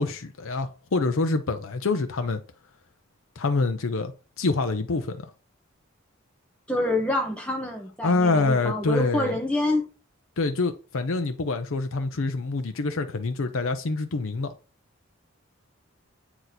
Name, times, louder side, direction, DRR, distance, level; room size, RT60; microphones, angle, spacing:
voice 1, 0.0-2.4 3.4-5.3 8.0-9.4 10.4-14.5, left 3 dB, 75° left, 0.6 m, -26 dB
voice 2, 6.7-9.9, left 1 dB, 5° left, 1.0 m, -27 dB
7.9 x 3.0 x 4.0 m
head